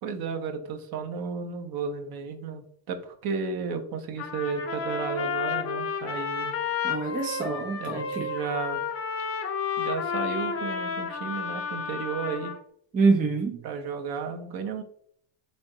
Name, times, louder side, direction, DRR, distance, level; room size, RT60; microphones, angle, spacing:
voice 1, 0.0-6.5 7.8-8.8 9.8-12.5 13.6-14.8, right 5 dB, 50° right, 5 dB, 0.9 m, -33 dB
Trumpet, 4.2-12.6, left 6 dB, 30° left, 0.5 m, -31 dB
voice 2, 6.8-8.3 12.9-13.6, right 4 dB, 20° right, 3 dB, 0.3 m, -25 dB
3.9 x 3.4 x 2.6 m, 0.62 s
supercardioid pair, 115°, 47 cm